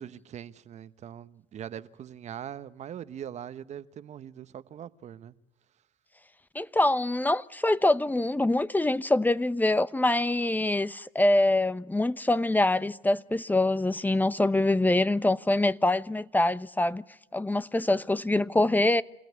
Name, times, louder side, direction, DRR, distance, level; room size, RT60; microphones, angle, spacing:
voice 1, 0.0-5.3, right 9 dB, 50° right, 1.1 m, -41 dB
voice 2, 6.5-17.0 17.3-19.0, left 2 dB, 10° left, 0.9 m, -24 dB
28.0 x 16.0 x 9.6 m
hypercardioid pair, 65°, 15 cm